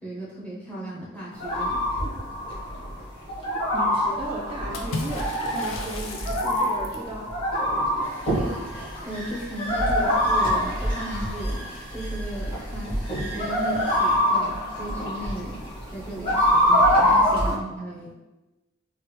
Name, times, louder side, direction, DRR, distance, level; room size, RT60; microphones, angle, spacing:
voice 1, 0.0-1.8 8.3-8.6 9.0-11.6 11.9-15.6 15.9-18.1, right 1 dB, 5° left, -7 dB, 0.7 m, -36 dB
sound 1, 1.3-17.5, equal, 25° left, 1.1 m, -25 dB
voice 2, 3.4-7.3 17.4-17.6, right 1 dB, 25° right, -3 dB, 0.3 m, -36 dB
Water / Splash splatter, 4.7-7.1, left 3 dB, 85° left, 0.4 m, -35 dB
sound 2, 8.0-14.2, right 2 dB, 70° left, 1.5 m, -41 dB
3.2 x 2.1 x 3.1 m, 1.1 s
head